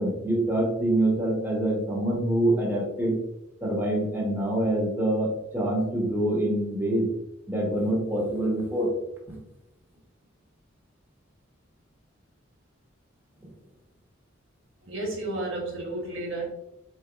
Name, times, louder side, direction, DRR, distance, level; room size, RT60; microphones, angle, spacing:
voice 1, 0.0-3.2 3.6-7.1 7.5-8.9 9.3-9.4, right 1 dB, 10° right, -3 dB, 1.1 m, -25 dB
voice 2, 14.8-16.4, right 2 dB, 85° right, -2 dB, 1.3 m, -32 dB
4.3 x 3.0 x 2.5 m, 0.89 s
head